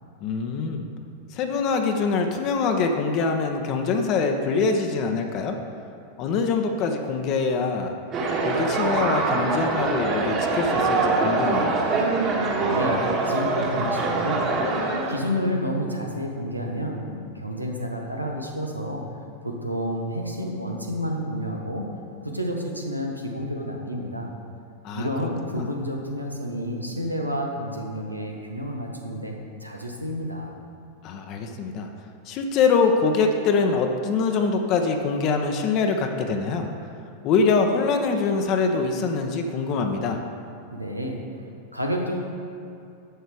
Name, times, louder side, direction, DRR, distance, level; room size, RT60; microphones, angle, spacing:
voice 1, 0.2-0.8 1.3-5.6 6.2-7.9 8.4-11.8 24.8-25.1 25.5-25.7 31.0-31.9 32.3-36.7 37.2-40.2, left 4 dB, 40° left, 4 dB, 0.9 m, -24 dB
sound 1, 8.1-15.2, right 3 dB, 35° right, 1.9 m, -24 dB
voice 2, 12.3-14.5 15.1-19.0 19.4-21.9 22.2-24.3 24.9-30.6 40.7-41.2 41.7-42.2, equal, 90° right, 0 dB, 1.3 m, -30 dB
11.5 x 7.9 x 4.9 m, 2.6 s
figure-of-eight pair, 90°, 0 cm